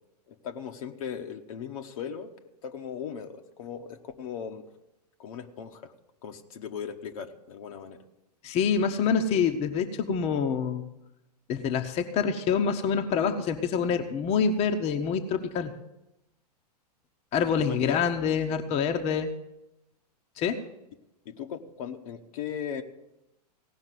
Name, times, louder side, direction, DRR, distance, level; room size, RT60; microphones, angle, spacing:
voice 1, 0.3-2.3 2.6-4.6 5.2-5.9 6.2-8.0 17.5-18.0 21.2-22.8, left 8 dB, 55° left, 6 dB, 1.1 m, -38 dB
voice 2, 8.4-10.8 11.5-15.7 17.3-19.3 20.4-20.6, left 6 dB, 30° left, 6 dB, 1.0 m, -26 dB
17.0 x 5.7 x 9.2 m, 0.90 s
figure-of-eight pair, 100°, 21 cm